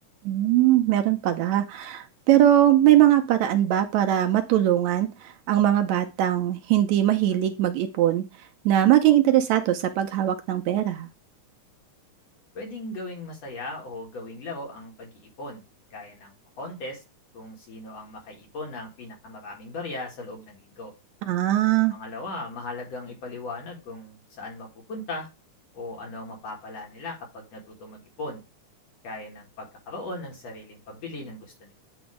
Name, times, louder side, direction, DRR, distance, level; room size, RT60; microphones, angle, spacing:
voice 1, 0.3-5.1 5.5-8.2 8.7-11.1 21.3-22.0, right 12 dB, 80° right, 6 dB, 1.7 m, -21 dB
voice 2, 12.5-15.6 15.9-17.0 17.3-20.9 21.9-25.3 25.7-28.4 29.0-31.7, left 2 dB, 55° left, 0 dB, 2.8 m, -38 dB
8.8 x 3.1 x 4.9 m, 0.28 s
omnidirectional pair, 3.6 m